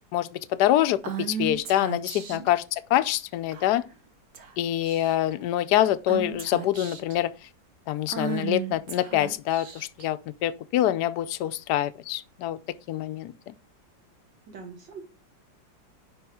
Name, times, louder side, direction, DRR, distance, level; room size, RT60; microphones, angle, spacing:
voice 1, 0.1-3.8 4.6-7.3 7.9-12.6 12.9-13.3, left 12 dB, 70° left, 1.1 m, -25 dB
Female speech woman speaking / Whispering, 1.0-2.5 3.5-3.9 4.3-4.5 4.8-5.3 6.1-7.2 8.1-10.1, right 6 dB, 55° right, 1.5 m, -34 dB
voice 2, 14.5-15.0, right 5 dB, 70° right, 1.9 m, -42 dB
11.0 x 3.6 x 4.9 m
omnidirectional pair, 2.1 m